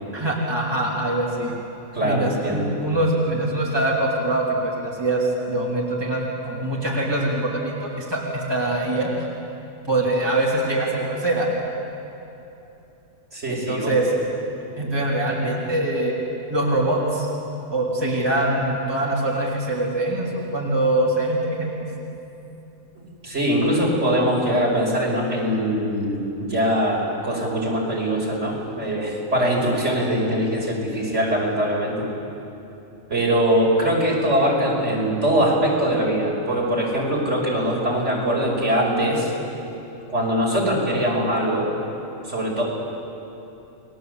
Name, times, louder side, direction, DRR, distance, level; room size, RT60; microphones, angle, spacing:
voice 1, 0.1-1.5 2.0-9.3 9.8-11.5 13.5-14.1 14.8-16.1 16.5-17.3 17.7-21.7, right 1 dB, 20° right, -4 dB, 3.5 m, -23 dB
voice 2, 1.9-2.7 13.3-14.0 23.2-32.0 33.1-39.3 40.1-41.7 42.3-42.6, equal, 60° right, -3 dB, 5.8 m, -22 dB
30.0 x 21.5 x 8.1 m, 2.9 s
omnidirectional pair, 1.4 m